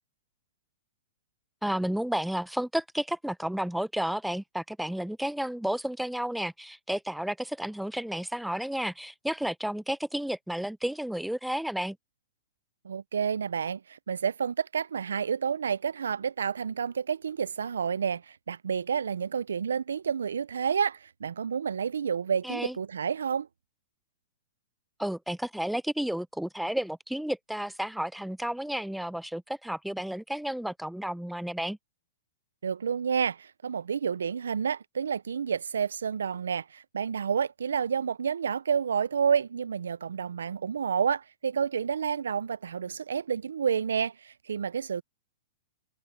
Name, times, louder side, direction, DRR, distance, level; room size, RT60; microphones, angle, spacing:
voice 1, 1.6-12.0 22.4-22.8 25.0-31.8, right 1 dB, ahead, 0.6 m, -32 dB
voice 2, 12.8-23.5 32.6-45.0, right 7 dB, 85° right, 0.6 m, -29 dB
hypercardioid pair, 125°, 0 cm